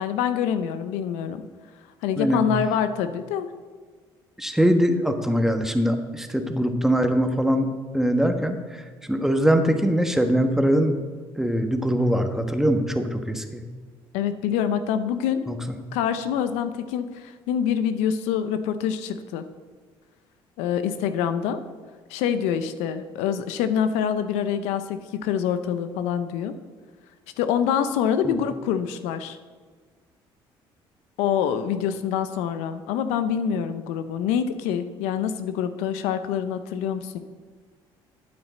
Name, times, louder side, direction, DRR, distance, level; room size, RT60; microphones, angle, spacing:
voice 1, 0.0-1.4 2.0-3.5 14.1-15.4 15.9-19.4 20.6-21.6 22.1-26.5 27.4-29.4 31.2-37.2, left 8 dB, 85° left, 10 dB, 0.7 m, -25 dB
voice 2, 2.2-2.5 4.4-10.9 11.4-13.6 15.5-15.6 28.2-28.3, equal, 5° right, 5 dB, 1.3 m, -22 dB
12.0 x 8.9 x 4.2 m, 1.5 s
supercardioid pair, 70°, 11 cm